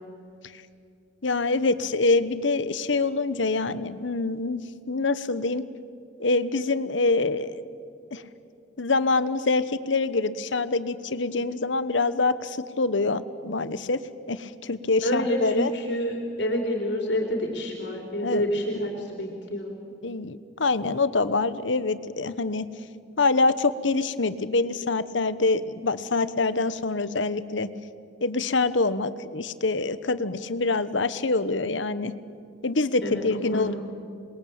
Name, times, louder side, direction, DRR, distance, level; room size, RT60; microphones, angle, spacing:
voice 1, 1.2-4.6 4.9-5.6 6.2-7.6 8.1-8.2 8.8-14.0 14.3-15.7 18.2-18.4 20.0-22.7 23.2-27.7 28.2-32.1 32.6-33.7, left 3 dB, 80° left, 14 dB, 1.1 m, -25 dB
voice 2, 15.0-19.7 33.0-33.2 33.5-33.8, equal, 65° left, 2 dB, 3.8 m, -28 dB
27.5 x 21.5 x 8.8 m, 2.4 s
head